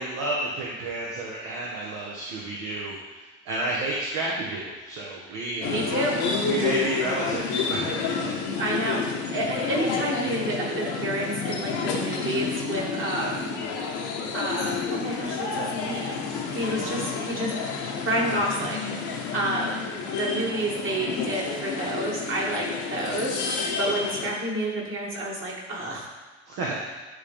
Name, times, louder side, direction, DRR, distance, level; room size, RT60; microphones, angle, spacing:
voice 1, 0.0-2.9 3.5-5.9 6.5-8.4 26.5-26.8, right 2 dB, 60° right, -4 dB, 1.2 m, -31 dB
sound 1, 5.6-24.3, left 5 dB, 55° left, 1.1 m, -30 dB
voice 2, 5.7-6.2 8.6-13.5 14.3-17.5 18.0-26.1, right 1 dB, 35° right, -3 dB, 2.2 m, -29 dB
9.8 x 3.7 x 3.5 m, 1.3 s
figure-of-eight pair, 55°, 33 cm